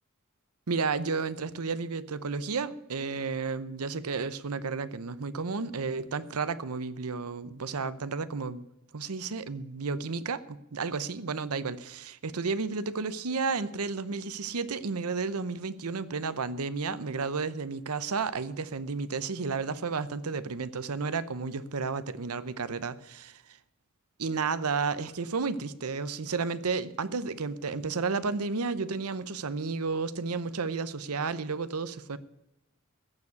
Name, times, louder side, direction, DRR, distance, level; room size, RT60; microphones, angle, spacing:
voice 1, 0.7-8.6 8.9-23.6 24.2-32.2, right 4 dB, 80° right, 0.8 m, -32 dB
14.5 x 7.3 x 8.3 m
head